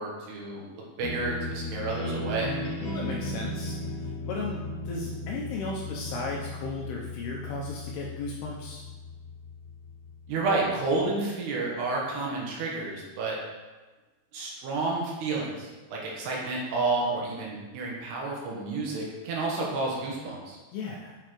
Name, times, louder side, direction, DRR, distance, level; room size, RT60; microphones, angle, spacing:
voice 1, 0.0-2.6 10.3-13.4 14.3-20.6, right 3 dB, 70° right, -3 dB, 3.0 m, -30 dB
sound 1, 1.0-11.1, left 1 dB, 70° left, 2.6 m, -36 dB
voice 2, 2.9-3.8 4.3-8.8 20.7-21.2, left 3 dB, 90° left, -2 dB, 2.4 m, -35 dB
8.7 x 5.6 x 3.1 m, 1.2 s
omnidirectional pair, 5.3 m